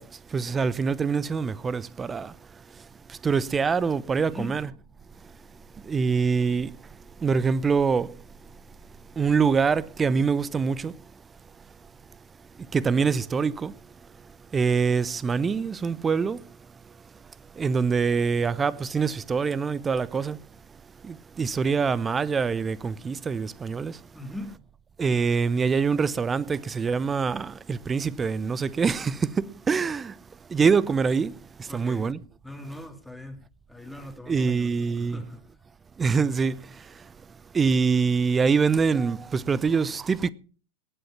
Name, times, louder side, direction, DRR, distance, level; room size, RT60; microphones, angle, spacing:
voice 1, 0.0-2.3 2.7-4.7 5.8-6.8 7.2-8.2 9.2-11.0 12.7-13.8 14.5-16.6 17.5-20.4 21.0-24.0 25.0-30.2 30.5-32.2 34.3-35.2 36.0-37.1 37.5-40.3, right 5 dB, 15° right, 0.5 m, -25 dB
voice 2, 4.2-4.6 24.1-24.6 31.7-32.1 32.4-33.4 33.7-35.4, left 1 dB, ahead, 2.0 m, -40 dB
19.0 x 7.8 x 5.8 m
figure-of-eight pair, 90°, 0 cm